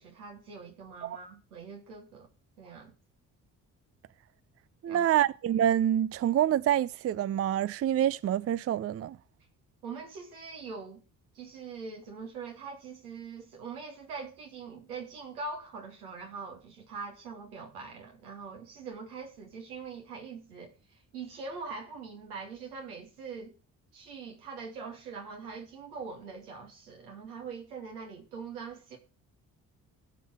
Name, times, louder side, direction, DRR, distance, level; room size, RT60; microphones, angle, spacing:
voice 1, 0.0-2.3 2.6-2.9 4.9-5.2 9.8-11.0 11.3-23.5 23.9-29.0, right 4 dB, 85° right, 2.5 m, -43 dB
voice 2, 4.8-9.2, right 11 dB, 35° right, 0.5 m, -27 dB
16.5 x 5.6 x 4.8 m
hypercardioid pair, 45°, 44 cm